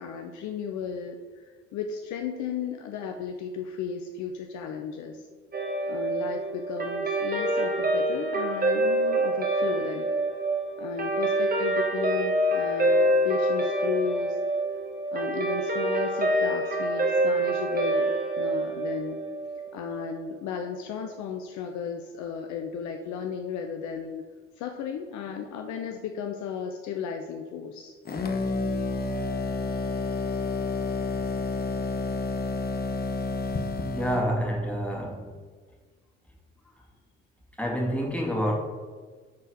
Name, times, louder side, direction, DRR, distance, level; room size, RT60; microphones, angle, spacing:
voice 1, 0.0-5.3 5.9-10.1 10.8-14.6 15.1-18.1 18.4-19.2 19.7-24.2 24.6-28.0, left 6 dB, 50° left, 4 dB, 0.7 m, -34 dB
Guitar, 5.5-20.1, right 1 dB, 25° right, 1.5 m, -26 dB
sound 1, 28.1-34.3, left 3 dB, 25° left, 0.9 m, -29 dB
voice 2, 33.8-35.3 37.6-38.5, equal, 5° left, -1 dB, 2.2 m, -28 dB
9.5 x 4.5 x 4.9 m, 1.5 s
figure-of-eight pair, 50°, 37 cm